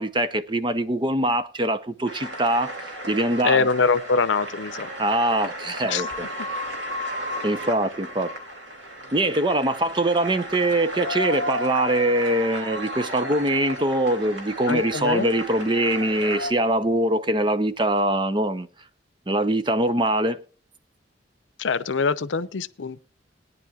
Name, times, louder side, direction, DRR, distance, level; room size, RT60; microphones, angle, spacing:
voice 1, 0.0-2.7 3.1-3.7 5.0-6.3 7.4-8.3 9.1-18.7 19.3-20.4, right 1 dB, 25° right, 0.7 m, -23 dB
sound 1, 2.0-16.5, equal, 80° right, 2.9 m, -34 dB
voice 2, 3.4-4.9 5.9-6.1 14.7-15.3 21.6-23.0, left 4 dB, 85° left, 0.6 m, -23 dB
20.5 x 10.0 x 2.4 m
head